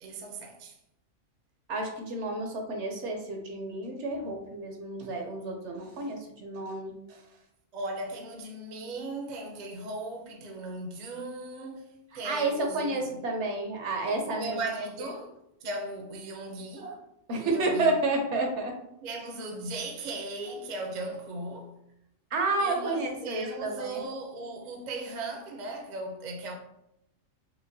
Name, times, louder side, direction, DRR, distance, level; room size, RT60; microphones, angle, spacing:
voice 1, 0.0-0.8 7.7-13.3 14.3-15.4 15.6-17.0 17.3-17.9 19.0-21.7 22.6-26.5, right 2 dB, 50° right, 0.5 m, -37 dB
voice 2, 1.7-7.2 12.2-14.6 16.8-16.9 17.3-18.8 20.5-20.6 22.3-24.1, right 2 dB, 65° right, 0.9 m, -30 dB
5.0 x 2.1 x 2.6 m
omnidirectional pair, 1.4 m